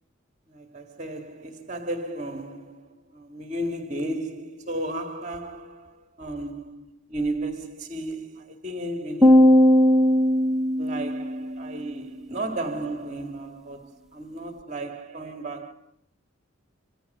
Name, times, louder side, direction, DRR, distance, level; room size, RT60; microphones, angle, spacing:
voice 1, 0.5-9.7 10.8-15.7, right 1 dB, 35° right, 2.2 m, -34 dB
sound 1, 9.2-11.6, equal, ahead, 1.3 m, -18 dB
28.0 x 25.5 x 6.8 m
head